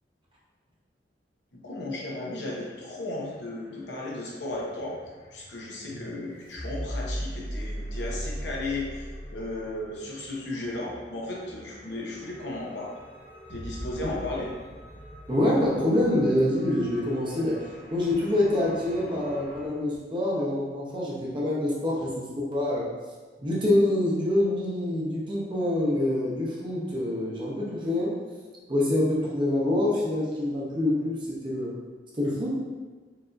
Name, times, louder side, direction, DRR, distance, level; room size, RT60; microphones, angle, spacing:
voice 1, 1.5-5.0 5.3-9.0 9.3-12.9 13.5-14.5, left 2 dB, 80° left, -4 dB, 0.9 m, -35 dB
sound 1, 2.1-19.7, equal, 40° left, 0.7 m, -40 dB
voice 2, 15.3-17.6 17.9-22.9 23.4-28.2 28.7-31.7 32.1-32.5, left 1 dB, 30° right, -6 dB, 0.9 m, -26 dB
4.7 x 2.8 x 2.5 m, 1.3 s
head